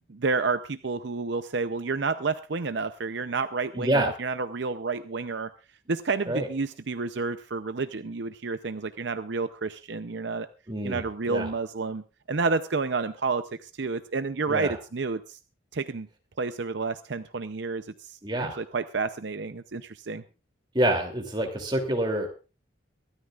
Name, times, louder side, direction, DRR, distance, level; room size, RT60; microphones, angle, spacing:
voice 1, 0.1-5.5 5.9-10.5 10.8-15.4 15.7-16.1 16.4-20.2, right 4 dB, 65° right, 10 dB, 0.6 m, -30 dB
voice 2, 3.7-4.1 6.3-6.5 10.7-11.5 14.5-14.7 18.2-18.6 20.7-22.3, right 1 dB, 25° right, 3 dB, 2.9 m, -27 dB
23.5 x 13.0 x 2.4 m, 0.32 s
head